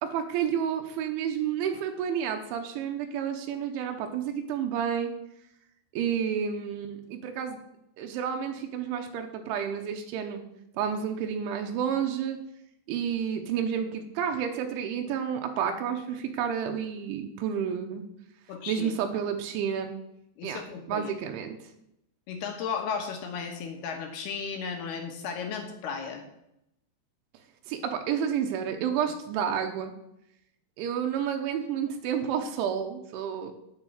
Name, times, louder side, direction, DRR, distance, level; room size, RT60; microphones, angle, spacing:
voice 1, 0.0-5.1 5.9-7.6 8.0-10.4 10.7-12.4 12.9-18.0 18.7-19.9 20.4-20.6 20.9-21.6 27.7-29.9 30.8-33.5, right 8 dB, 85° right, 4 dB, 3.4 m, -30 dB
voice 2, 18.5-18.9 20.4-21.1 22.3-26.2, left 6 dB, 70° left, 4 dB, 2.9 m, -35 dB
9.5 x 8.3 x 7.9 m, 0.82 s
omnidirectional pair, 5.4 m